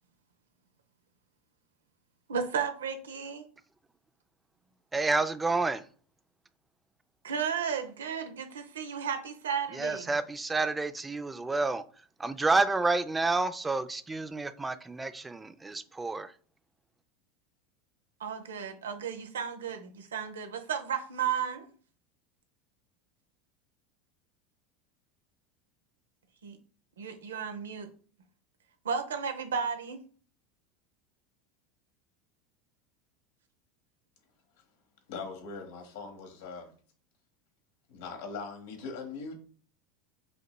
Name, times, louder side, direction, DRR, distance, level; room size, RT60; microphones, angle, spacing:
voice 1, 2.3-3.4 7.2-10.1 18.2-21.7 26.4-26.6 27.0-27.9 28.8-30.0, right 7 dB, 90° right, 0.6 m, -33 dB
voice 2, 4.9-5.8 9.7-11.8 12.2-16.3, right 3 dB, 15° right, 0.3 m, -29 dB
voice 3, 35.1-36.7 37.9-39.4, left 4 dB, 75° left, 1.1 m, -40 dB
5.2 x 2.9 x 2.2 m
hypercardioid pair, 95°, 0 cm